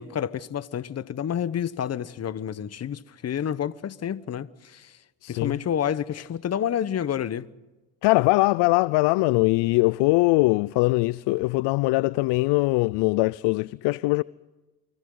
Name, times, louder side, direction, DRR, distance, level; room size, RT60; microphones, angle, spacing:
voice 1, 0.0-5.0 5.3-7.5, left 9 dB, 35° left, 1.0 m, -29 dB
voice 2, 5.2-5.5 8.0-14.2, left 22 dB, 60° left, 0.6 m, -21 dB
30.0 x 24.5 x 3.9 m
supercardioid pair, 80°, 45 cm